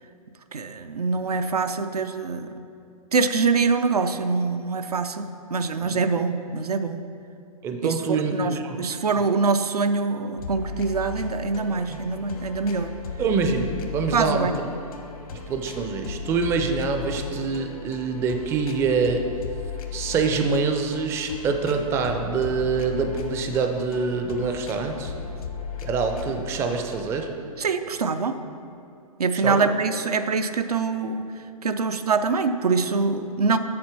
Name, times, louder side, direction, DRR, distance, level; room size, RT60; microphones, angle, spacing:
voice 1, 0.5-2.5 3.1-7.0 7.8-7.9 8.3-12.9 14.1-14.5 27.6-28.4 29.2-31.3 31.6-33.6, right 4 dB, 80° right, 9 dB, 0.5 m, -24 dB
voice 2, 7.6-8.9 11.9-12.0 13.2-14.5 15.3-19.2 19.9-25.1 25.8-27.3 29.3-29.7, right 5 dB, 15° right, 5 dB, 0.4 m, -25 dB
sound 1, 10.4-27.3, left 6 dB, 70° left, 1.0 m, -36 dB
7.6 x 4.3 x 5.9 m, 2.6 s
figure-of-eight pair, 120°, 19 cm